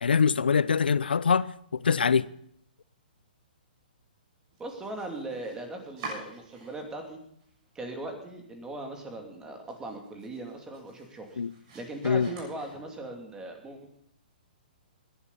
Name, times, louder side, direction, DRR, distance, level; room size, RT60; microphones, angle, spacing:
voice 1, 0.0-2.3 11.4-11.5 12.0-12.3, left 6 dB, 90° left, 0.4 m, -24 dB
Domestic sounds home sounds, 4.5-7.1 7.4-8.1 8.5-8.6 9.0-9.1 9.5-13.2, right 3 dB, 40° right, 7.1 m, -47 dB
voice 2, 4.6-7.2 7.7-11.4 11.7-13.9, right 2 dB, 15° right, 2.7 m, -39 dB
19.5 x 11.0 x 4.1 m
hypercardioid pair, 135°, 5 cm